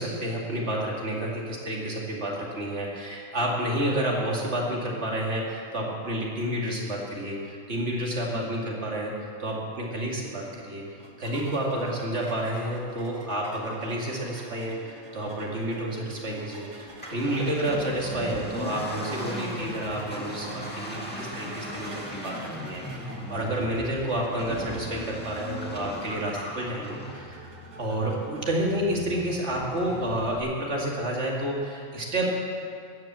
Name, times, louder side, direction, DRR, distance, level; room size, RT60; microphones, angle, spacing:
voice 1, 0.0-10.8 11.2-32.3, right 1 dB, 90° right, -2 dB, 2.7 m, -30 dB
sound 1, 11.0-28.8, right 2 dB, 45° right, 1.3 m, -47 dB
Accelerating revving vroom, 16.9-30.4, left 1 dB, 10° left, 2.0 m, -38 dB
14.0 x 10.5 x 7.5 m, 2.3 s
omnidirectional pair, 1.1 m